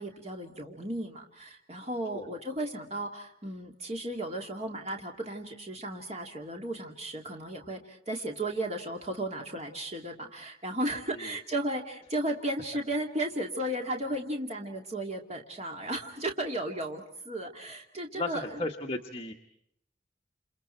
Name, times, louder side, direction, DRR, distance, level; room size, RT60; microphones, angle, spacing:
voice 1, 0.0-18.6, right 1 dB, 35° right, 2 dB, 2.5 m, -35 dB
voice 2, 18.1-19.3, left 2 dB, 30° left, 3 dB, 1.4 m, -34 dB
30.0 x 29.0 x 4.5 m, 0.75 s
head